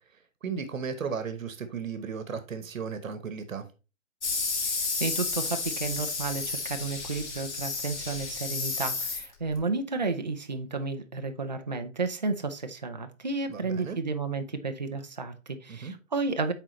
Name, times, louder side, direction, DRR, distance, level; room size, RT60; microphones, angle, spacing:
voice 1, 0.4-3.6 13.5-14.0 15.7-15.9, right 6 dB, 90° right, 1.1 m, -35 dB
sound 1, 4.2-9.6, left 4 dB, 60° left, 2.0 m, -32 dB
voice 2, 4.6-16.5, right 3 dB, 35° right, 0.4 m, -32 dB
9.0 x 3.8 x 3.0 m
hypercardioid pair, 175°, 39 cm